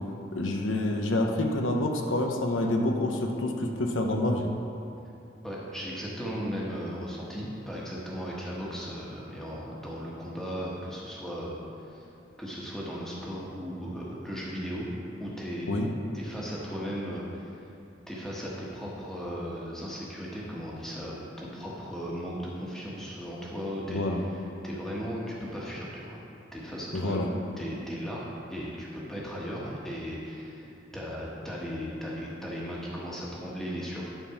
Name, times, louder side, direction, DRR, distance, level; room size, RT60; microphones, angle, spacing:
voice 1, 0.3-4.5 15.7-15.9 23.9-24.2 26.9-27.3, left 1 dB, 90° left, 2 dB, 0.9 m, -27 dB
voice 2, 5.4-11.5 11.9-12.1 12.4-14.9 15.2-15.7 16.1-17.6 18.1-24.3 24.6-26.2 26.5-27.2 27.6-34.1, equal, ahead, -6 dB, 1.3 m, -36 dB
10.5 x 4.4 x 5.8 m, 2.8 s
head